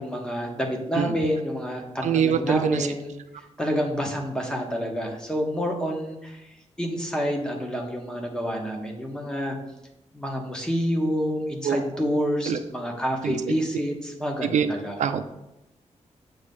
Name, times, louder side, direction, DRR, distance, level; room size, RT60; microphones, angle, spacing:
voice 1, 0.0-3.1 3.6-9.6 10.1-15.0, equal, 5° left, 1 dB, 1.0 m, -28 dB
voice 2, 0.9-1.3 2.0-2.9 11.6-11.8 12.5-12.6 13.2-13.4 14.4-14.7 15.0-15.2, right 7 dB, 80° right, 9 dB, 0.4 m, -24 dB
7.7 x 3.3 x 5.4 m, 0.93 s
wide cardioid pair, 155°, 12 cm